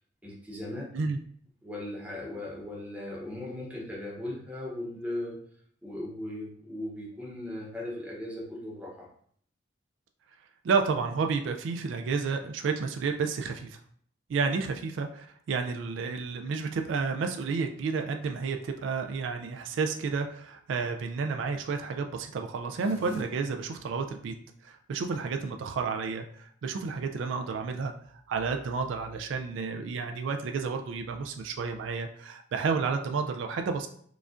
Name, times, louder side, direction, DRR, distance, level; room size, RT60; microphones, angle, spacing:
voice 1, 0.2-0.9 1.6-5.4 5.8-9.1, left 1 dB, 5° right, -4 dB, 0.8 m, -38 dB
voice 2, 10.6-13.8 14.3-24.3 24.6-33.9, right 5 dB, 75° right, 5 dB, 0.3 m, -31 dB
sound 1, 22.6-23.2, right 2 dB, 75° left, 0.5 m, -39 dB
4.9 x 2.4 x 2.4 m, 0.62 s
head